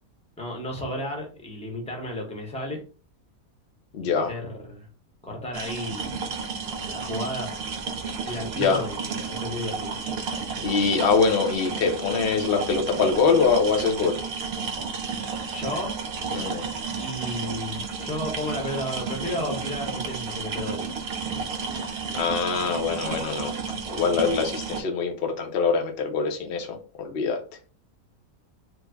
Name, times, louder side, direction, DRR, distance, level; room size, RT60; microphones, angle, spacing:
voice 1, 0.4-2.8 4.0-4.9 5.2-6.0 6.9-7.6 8.2-10.0 15.5-16.0 17.0-20.9, left 1 dB, 5° left, 0 dB, 0.6 m, -33 dB
voice 2, 3.9-4.3 8.3-8.9 10.6-14.2 16.3-16.7 21.7-21.9 22.1-23.5 23.9-27.4, left 5 dB, 55° left, 3 dB, 0.7 m, -24 dB
sound 1, 5.5-24.8, right 5 dB, 60° right, 0.7 m, -32 dB
3.1 x 2.0 x 3.3 m, 0.37 s
omnidirectional pair, 1.5 m